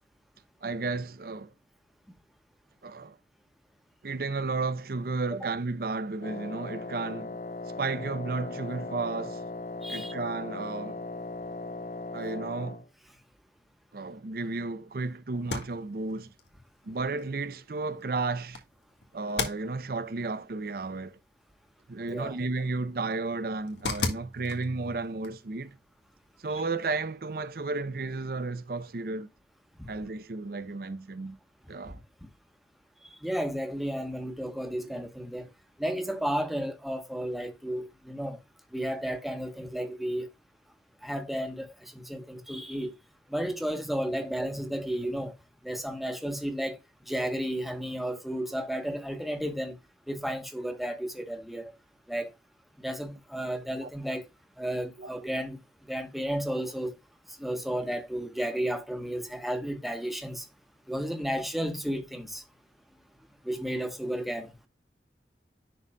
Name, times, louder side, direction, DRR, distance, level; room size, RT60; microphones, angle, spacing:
voice 1, 0.6-1.5 2.8-3.2 4.0-7.4 7.8-9.4 9.9-11.0 12.1-12.8 13.9-16.3 16.8-18.6 19.1-21.2 21.9-25.8 26.4-29.3 29.9-31.4 31.7-32.0 53.8-53.9 55.0-55.1, right 3 dB, 55° right, 0.6 m, -33 dB
Wind instrument woodwind instrument, 6.2-12.9, left 2 dB, 45° left, 0.5 m, -38 dB
voice 2, 9.8-10.1 22.1-22.4 33.1-35.5 35.8-38.4 38.7-40.3 41.0-42.9 43.3-45.3 45.6-46.8 47.1-49.8 50.1-51.7 52.1-52.3 52.8-54.3 54.6-57.0 57.4-60.5 60.9-62.4 63.4-64.5, equal, ahead, 1.0 m, -33 dB
sound 1, 15.3-27.0, left 4 dB, 80° left, 1.6 m, -40 dB
11.0 x 4.0 x 2.2 m
head